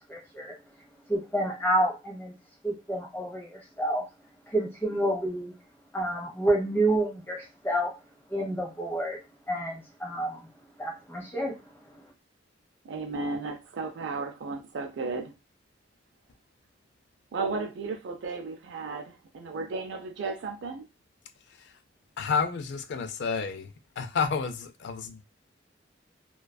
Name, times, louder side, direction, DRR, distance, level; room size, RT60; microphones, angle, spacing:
voice 1, 0.1-0.5 1.1-2.3 2.6-4.0 4.5-5.5 5.9-7.9 8.3-9.2 9.5-10.4 10.8-11.5, right 1 dB, 10° left, 0.8 m, -29 dB
voice 2, 12.8-15.3 17.3-20.8, right 3 dB, 65° right, 0.4 m, -34 dB
voice 3, 22.2-23.7 24.0-25.2, left 5 dB, 60° left, 0.4 m, -30 dB
2.4 x 2.3 x 2.2 m
head